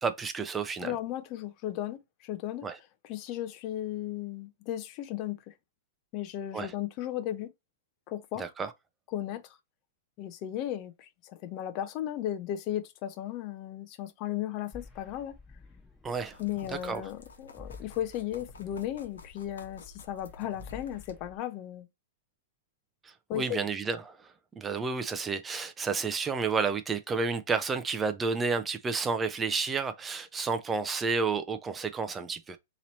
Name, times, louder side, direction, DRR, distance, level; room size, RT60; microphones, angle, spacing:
voice 1, 0.0-0.9 2.6-2.8 6.5-6.7 8.4-8.7 16.0-16.4 16.7-17.0 23.3-24.2 24.6-32.6, right 4 dB, 15° right, 0.5 m, -31 dB
voice 2, 0.8-2.7 3.0-5.5 6.1-7.5 8.1-8.5 9.1-9.4 10.2-15.3 16.4-21.9 23.3-23.6, left 12 dB, 40° left, 0.6 m, -35 dB
sound 1, 14.7-21.4, left 4 dB, 10° left, 1.0 m, -52 dB
sound 2, 16.1-21.1, left 3 dB, 85° left, 1.0 m, -52 dB
3.0 x 2.9 x 4.0 m
hypercardioid pair, 120°, 0 cm